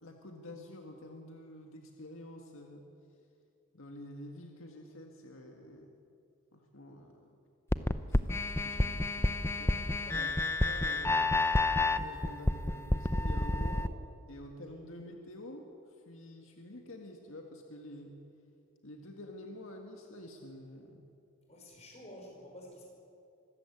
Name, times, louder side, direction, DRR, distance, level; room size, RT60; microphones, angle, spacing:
voice 1, 0.0-2.9 3.7-6.0 6.5-7.4 8.1-10.3 10.6-11.2 11.9-14.0 14.3-18.2 18.8-21.1, left 1 dB, 75° left, 2 dB, 1.8 m, -48 dB
sound 1, 7.7-13.9, left 2 dB, 10° left, 0.5 m, -29 dB
voice 2, 21.5-22.9, equal, 30° left, -1 dB, 5.5 m, -50 dB
25.0 x 14.5 x 8.5 m, 2.5 s
head